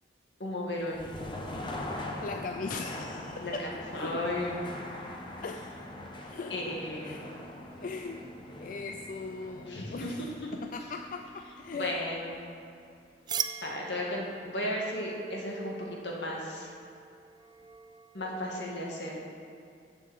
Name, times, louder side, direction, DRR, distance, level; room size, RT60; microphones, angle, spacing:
voice 1, 0.4-1.0 3.4-3.5 3.9-4.5 6.5-7.1 9.7-10.3 11.7-12.3 13.6-16.7 18.1-19.2, left 1 dB, 75° left, -2 dB, 1.8 m, -34 dB
sound 1, 0.7-12.6, left 1 dB, 25° left, 0.9 m, -42 dB
voice 2, 2.2-3.7 3.9-4.2 5.4-5.7 6.2-6.5 7.0-7.2 7.8-8.2 8.6-10.3 10.5-11.9, left 4 dB, 50° left, 5 dB, 0.4 m, -39 dB
sound 2, 13.3-18.8, right 7 dB, 25° right, 0.3 m, -41 dB
7.4 x 7.1 x 7.3 m, 2.5 s
head